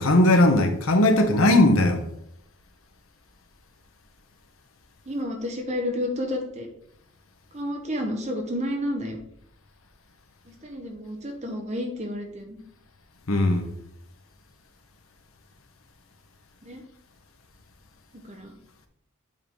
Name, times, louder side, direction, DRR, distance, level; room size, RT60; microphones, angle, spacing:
voice 1, 0.0-2.0 13.3-13.7, left 1 dB, 75° left, 1.0 m, -18 dB
voice 2, 5.1-6.7 7.5-9.2 10.6-12.6 16.7-16.8 18.2-18.5, left 1 dB, 30° right, 1.1 m, -30 dB
7.6 x 3.7 x 4.7 m
head